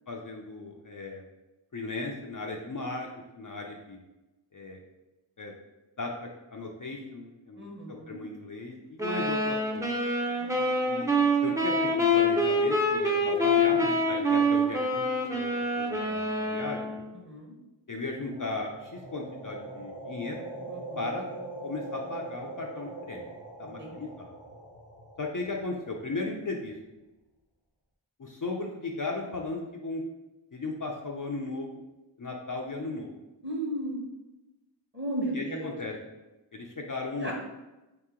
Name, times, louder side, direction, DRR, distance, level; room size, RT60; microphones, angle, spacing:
voice 1, 0.1-1.2 1.7-3.1 3.3-4.0 4.5-4.8 5.4-5.5 6.0-9.9 10.9-11.1 11.4-17.1 17.9-20.4 21.0-21.2 21.6-23.2 23.6-24.3 25.2-26.8 28.2-30.0 30.5-31.8 32.2-33.1 35.3-35.9 36.5-37.3, left 3 dB, 45° left, 0 dB, 0.5 m, -36 dB
voice 2, 7.6-8.2 10.4-10.7 17.1-17.5 20.7-21.1 23.8-24.0 33.4-34.0 34.9-35.7 37.2-37.3, right 1 dB, 25° right, -2 dB, 1.1 m, -35 dB
sound 1, 9.0-17.0, equal, 5° right, 0.7 m, -26 dB
sound 2, 18.1-26.2, right 2 dB, 60° right, 0.9 m, -42 dB
3.9 x 2.8 x 3.6 m, 1.0 s
wide cardioid pair, 45°, 48 cm